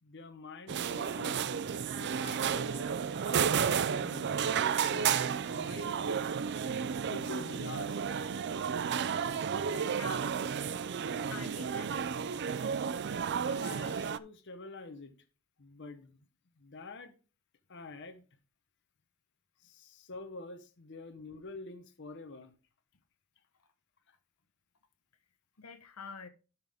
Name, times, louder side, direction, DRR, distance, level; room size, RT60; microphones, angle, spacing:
voice 1, 0.0-1.5 2.0-2.9 3.2-5.9 7.1-8.0 13.4-15.1 15.6-16.2 16.6-17.1 17.7-18.2 19.6-22.5, left 3 dB, 55° left, 1.0 m, -47 dB
sound 1, 0.7-14.2, right 7 dB, 50° right, 0.4 m, -32 dB
voice 2, 9.7-10.3 11.3-11.9 25.6-26.3, left 5 dB, 90° left, 1.2 m, -46 dB
12.0 x 5.7 x 3.6 m
head